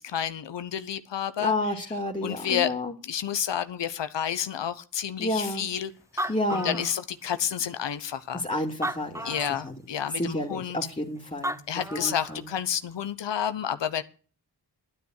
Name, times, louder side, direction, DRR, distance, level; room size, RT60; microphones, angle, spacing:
voice 1, 0.0-1.5 2.2-2.7 3.0-8.4 9.2-10.8 11.7-14.0, left 9 dB, 90° left, 10 dB, 1.0 m, -30 dB
voice 2, 1.4-2.9 5.2-5.7 6.3-6.8 8.3-9.4 9.6-9.7 10.2-11.6 11.9-12.5, left 1 dB, 15° left, -2 dB, 2.6 m, -30 dB
Animal, 5.7-5.8 6.0-7.4 8.1-8.2 8.7-9.7 11.1-11.2 11.4-12.4, right 1 dB, 5° right, 1.0 m, -34 dB
12.5 x 9.5 x 6.4 m, 0.39 s
cardioid pair, 40°, 42 cm